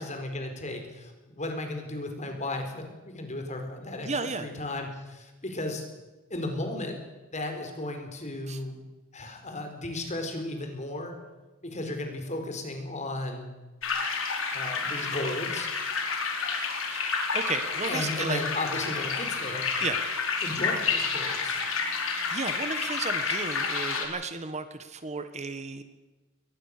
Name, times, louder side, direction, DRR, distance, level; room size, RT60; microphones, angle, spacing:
voice 1, 0.0-4.1 4.4-5.8 6.3-7.0 7.3-8.7 9.1-11.1 11.6-13.5 14.5-15.7 17.9-19.7 20.4-21.5, left 2 dB, 35° left, 5 dB, 4.4 m, -35 dB
voice 2, 4.0-4.5 8.5-8.6 16.9-17.0 17.3-18.4 19.8-20.0 22.3-25.8, right 4 dB, 35° right, 10 dB, 1.4 m, -33 dB
sound 1, 13.8-24.1, left 5 dB, 70° left, 4.9 m, -30 dB
22.0 x 20.0 x 6.7 m, 1.2 s
head